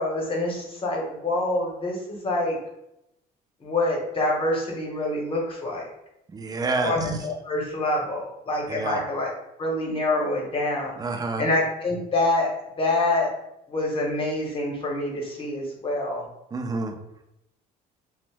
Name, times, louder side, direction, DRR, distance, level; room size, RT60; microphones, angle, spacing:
voice 1, 0.0-2.6 3.6-5.9 6.8-9.3 9.6-11.0 11.4-12.5 12.8-13.3 13.7-16.2, left 2 dB, 30° left, -1 dB, 0.9 m, -26 dB
voice 2, 6.3-6.9 8.7-9.0 11.0-11.4 16.5-16.9, right 3 dB, 25° right, 4 dB, 0.4 m, -28 dB
2.6 x 2.0 x 3.3 m, 0.83 s
cardioid pair, 110°, 17 cm